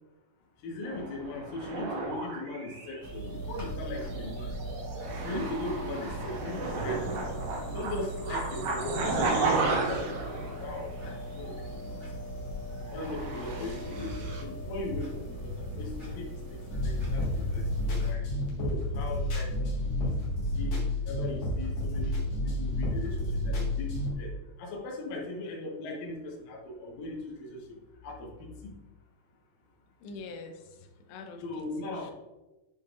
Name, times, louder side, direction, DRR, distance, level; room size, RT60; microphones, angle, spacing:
voice 1, 0.6-4.5 5.2-7.2 7.7-12.0 12.9-18.3 18.6-20.1 20.4-20.8 21.1-24.3 24.6-27.8 28.0-28.7 31.4-32.1, left 2 dB, 65° left, -2 dB, 2.7 m, -39 dB
sound 1, 0.8-3.1 4.0-11.2 11.4-11.7 12.9-14.4, right 3 dB, 70° right, 2.1 m, -34 dB
sound 2, 3.0-18.1, equal, 20° right, 0.8 m, -39 dB
voice 2, 13.7-14.0 30.0-32.1, left 3 dB, 80° left, 3 dB, 3.0 m, -46 dB
sound 3, 16.7-24.1, left 1 dB, 50° left, 2.3 m, -30 dB
9.4 x 5.6 x 2.5 m, 1.1 s
omnidirectional pair, 5.0 m